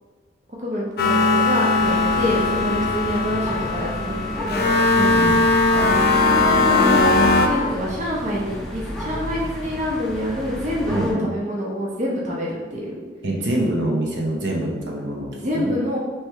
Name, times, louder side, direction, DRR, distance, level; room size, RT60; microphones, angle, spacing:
voice 1, 0.6-4.7 6.0-12.9 15.4-16.0, equal, 40° right, -4 dB, 0.7 m, -26 dB
sound 1, 1.0-7.5, left 3 dB, 55° left, 0.5 m, -19 dB
sound 2, 1.7-11.1, equal, 5° left, 0.5 m, -33 dB
voice 2, 5.0-5.4 10.9-11.3 13.2-15.3 15.5-15.7, right 1 dB, 75° right, -1 dB, 0.8 m, -24 dB
3.3 x 3.1 x 4.6 m, 1.4 s
head